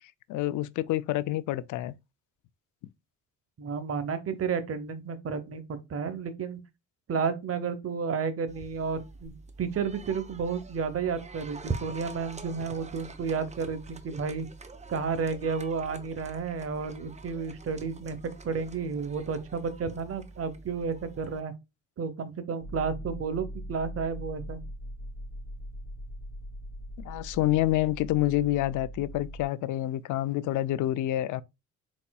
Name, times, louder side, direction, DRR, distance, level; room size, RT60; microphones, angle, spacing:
voice 1, 0.3-1.9 27.0-31.4, left 14 dB, 80° left, 0.5 m, -27 dB
voice 2, 3.6-6.6 7.1-14.5 14.9-21.5 22.0-24.6, right 5 dB, 50° right, 1.0 m, -32 dB
sound 1, 8.5-21.4, right 3 dB, 25° right, 0.8 m, -44 dB
sound 2, 22.6-29.5, equal, 25° left, 2.5 m, -41 dB
4.5 x 4.2 x 2.2 m
cardioid pair, 90°, 30 cm